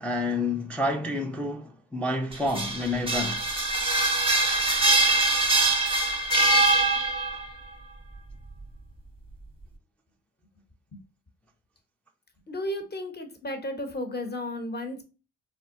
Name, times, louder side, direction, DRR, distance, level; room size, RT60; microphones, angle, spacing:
voice 1, 0.0-3.5, left 2 dB, 5° left, 0.3 m, -29 dB
sound 1, 2.3-7.5, right 2 dB, 15° right, 0.7 m, -23 dB
voice 2, 12.5-15.0, left 1 dB, 25° left, 0.8 m, -33 dB
3.5 x 2.2 x 2.4 m
supercardioid pair, 50°, 40 cm